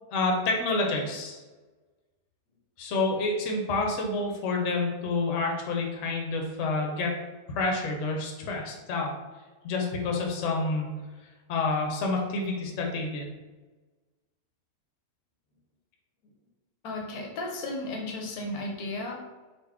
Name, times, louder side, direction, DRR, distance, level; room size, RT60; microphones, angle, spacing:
voice 1, 0.1-1.4 2.8-7.1 7.5-9.1 9.6-11.0 11.5-13.3, left 3 dB, 65° left, 0 dB, 0.9 m, -28 dB
voice 2, 16.8-19.1, left 2 dB, 80° left, 0 dB, 1.2 m, -34 dB
4.0 x 2.1 x 3.5 m, 1.2 s
omnidirectional pair, 1.6 m